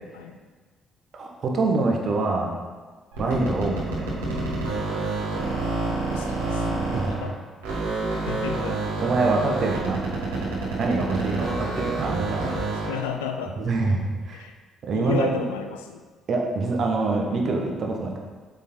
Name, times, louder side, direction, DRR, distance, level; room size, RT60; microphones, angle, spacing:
voice 1, 1.1-2.6 3.2-4.1 6.5-7.1 9.0-10.1 10.8-12.6 13.6-14.4 14.8-15.3 16.3-18.2, right 3 dB, 50° right, 1 dB, 1.3 m, -25 dB
sound 1, 3.1-7.3 7.6-13.0, right 3 dB, 75° right, 2.0 m, -28 dB
voice 2, 6.1-6.7 7.1-7.4 8.1-8.8 12.8-13.6 14.3-14.6 14.9-16.1, left 7 dB, 80° left, 5 dB, 0.5 m, -33 dB
7.2 x 5.2 x 4.3 m, 1.4 s
figure-of-eight pair, 45°, 0 cm